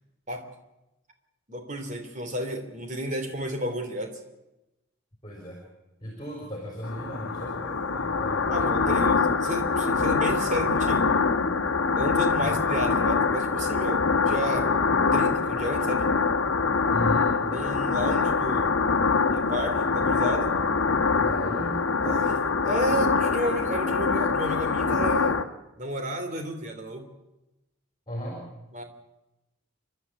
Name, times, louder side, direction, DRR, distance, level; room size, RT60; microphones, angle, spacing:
voice 1, 1.5-4.2 8.5-11.1 11.9-14.7 15.1-16.1 17.5-18.7 19.3-20.5 22.0-25.4 25.8-27.1 28.7-28.8, equal, 35° right, 5 dB, 3.0 m, -32 dB
voice 2, 5.2-5.6 6.0-9.0 12.4-12.5 16.9-17.3 21.2-21.8 28.1-28.5, equal, 20° left, -1 dB, 4.4 m, -36 dB
sound 1, 6.8-25.4, left 4 dB, 75° left, 1.3 m, -24 dB
28.5 x 12.0 x 8.5 m, 0.97 s
head